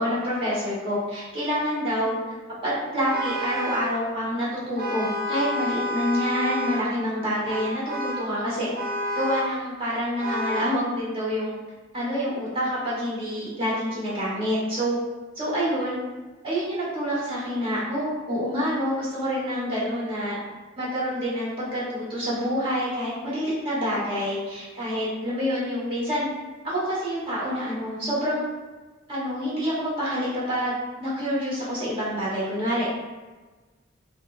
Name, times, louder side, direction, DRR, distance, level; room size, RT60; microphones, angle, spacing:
voice 1, 0.0-2.2 2.6-8.7 9.1-11.5 11.9-15.0 15.4-16.0 16.4-20.4 20.8-26.3 26.6-28.4 29.1-32.9, equal, 30° right, -9 dB, 1.0 m, -27 dB
Vehicle horn car horn honking, 3.1-4.0 4.8-6.9 7.5-8.3 8.7-9.6 10.2-10.8, equal, 50° right, 0.5 m, -29 dB
3.1 x 2.1 x 2.3 m, 1.3 s
head